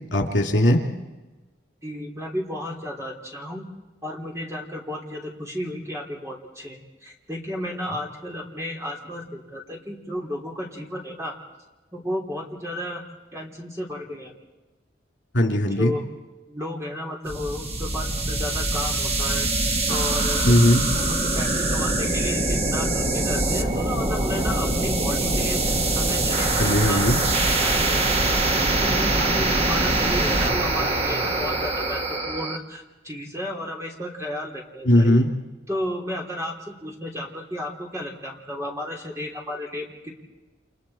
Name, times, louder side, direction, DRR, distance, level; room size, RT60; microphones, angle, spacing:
voice 1, 0.1-0.8 15.3-15.9 20.4-20.8 26.6-27.2 34.8-35.3, left 1 dB, 80° left, 2 dB, 3.0 m, -18 dB
voice 2, 1.8-3.6 4.0-11.4 11.9-13.0 13.3-14.3 15.8-16.0 16.5-19.5 19.9-20.5 20.9-27.3 27.6-28.4 28.8-35.2 35.7-40.1, left 1 dB, 15° right, -2 dB, 3.5 m, -33 dB
sound 1, 17.3-32.6, right 2 dB, 35° right, 1.3 m, -23 dB
30.0 x 28.5 x 4.4 m, 1.2 s
head